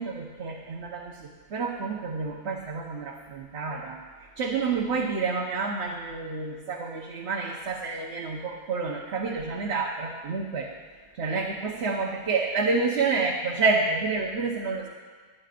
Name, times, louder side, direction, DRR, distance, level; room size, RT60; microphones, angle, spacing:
voice 1, 0.0-4.0 4.4-10.7 11.1-14.9, right 4 dB, 80° right, -2 dB, 1.3 m, -29 dB
28.5 x 9.9 x 2.5 m, 1.5 s
omnidirectional pair, 1.1 m